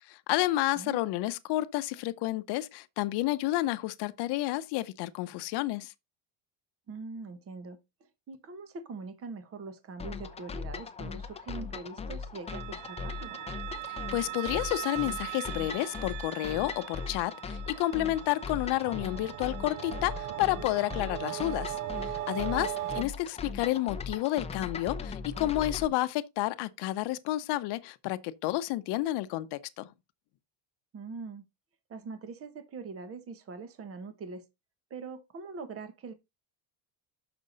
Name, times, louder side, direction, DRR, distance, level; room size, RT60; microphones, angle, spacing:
voice 1, 0.1-5.9 13.9-21.8 22.0-29.9, left 16 dB, 65° left, 0.8 m, -30 dB
voice 2, 6.9-7.8 8.3-13.4 22.6-23.0 30.9-31.4 31.9-34.5 34.9-36.1, right 4 dB, 30° right, 1.1 m, -43 dB
sound 1, 10.0-25.9, left 5 dB, 15° left, 0.6 m, -39 dB
sound 2, 12.5-23.0, right 15 dB, 45° right, 0.6 m, -39 dB
6.6 x 6.1 x 4.0 m
cardioid pair, 140°, 44 cm